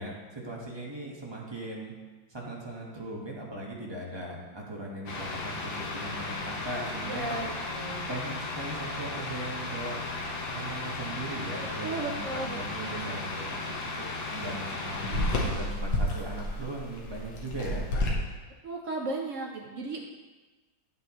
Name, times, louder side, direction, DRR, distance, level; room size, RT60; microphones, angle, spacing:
voice 1, 0.0-2.0 2.3-7.3 8.0-10.1 10.5-13.4 13.6-17.8, right 1 dB, 15° right, -3 dB, 1.0 m, -39 dB
sound 1, 5.1-18.1, left 2 dB, 75° left, 2.0 m, -33 dB
voice 2, 7.0-8.1 11.8-13.6 18.6-20.1, right 3 dB, 70° right, 0 dB, 0.7 m, -36 dB
9.3 x 7.1 x 3.0 m, 1.2 s
omnidirectional pair, 2.1 m